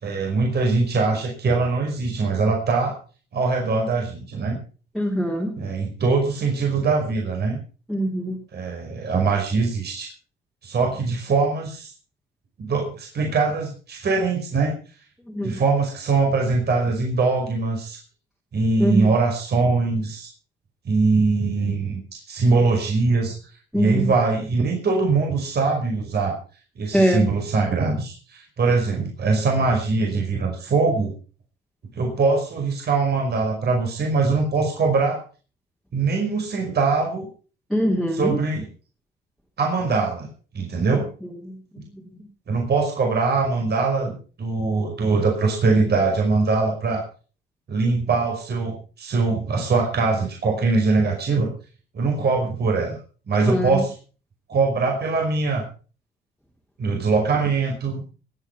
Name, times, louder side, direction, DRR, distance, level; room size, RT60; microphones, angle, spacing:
voice 1, 0.0-3.0 3.3-4.6 5.6-7.6 8.5-10.1 10.6-11.9 12.6-14.7 15.4-18.0 18.5-20.3 20.8-23.4 23.7-26.4 26.8-31.1 31.9-35.2 35.9-37.3 38.1-38.7 39.6-40.3 40.5-41.1 42.5-47.0 47.7-51.5 51.9-53.0 53.3-53.9 54.5-55.6 56.8-58.0, right 4 dB, 55° right, 1 dB, 5.5 m, -22 dB
voice 2, 4.9-5.6 7.9-8.4 15.3-15.6 18.8-19.1 23.7-24.1 26.9-27.3 37.7-38.4 41.2-42.2 53.4-53.8, equal, ahead, -2 dB, 3.2 m, -23 dB
19.0 x 9.2 x 5.8 m, 0.39 s
cardioid pair, 90°, 20 cm